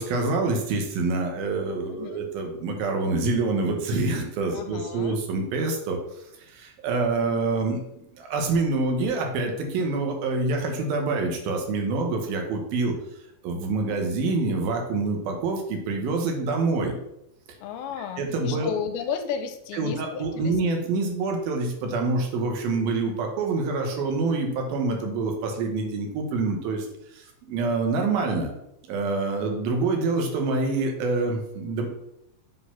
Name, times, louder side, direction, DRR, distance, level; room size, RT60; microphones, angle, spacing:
voice 1, 0.0-6.0 6.5-7.8 8.1-13.0 13.4-16.9 18.2-18.7 19.7-26.9 27.1-28.5 28.9-31.9, right 3 dB, 75° right, 3 dB, 2.8 m, -26 dB
voice 2, 1.9-2.2 4.5-5.2 17.6-20.6, left 7 dB, 85° left, 8 dB, 2.5 m, -33 dB
7.7 x 4.0 x 5.6 m, 0.80 s
omnidirectional pair, 4.5 m